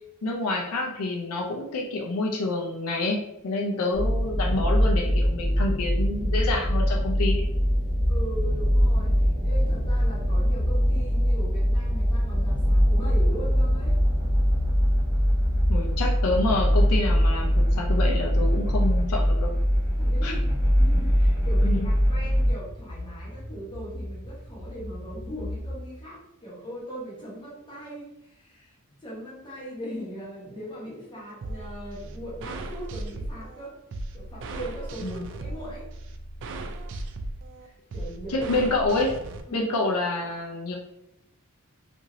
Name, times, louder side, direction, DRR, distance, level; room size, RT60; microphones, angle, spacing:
voice 1, 0.2-7.4 15.7-19.5 20.2-20.3 20.9-21.1 21.6-21.9 35.0-35.2 38.3-39.1 39.5-40.8, left 2 dB, 80° left, 0 dB, 0.5 m, -28 dB
sound 1, 3.9-22.5, equal, 15° right, 0.8 m, -22 dB
sound 2, 6.9-25.8, left 1 dB, 55° left, 0.8 m, -36 dB
voice 2, 8.1-14.0 20.0-20.4 20.8-28.7 29.0-33.8 34.1-35.9 37.6-38.5 39.5-39.7, equal, 20° left, -7 dB, 1.1 m, -39 dB
sound 3, 31.4-39.4, right 2 dB, 55° right, 0.3 m, -37 dB
2.7 x 2.6 x 2.9 m, 0.82 s
head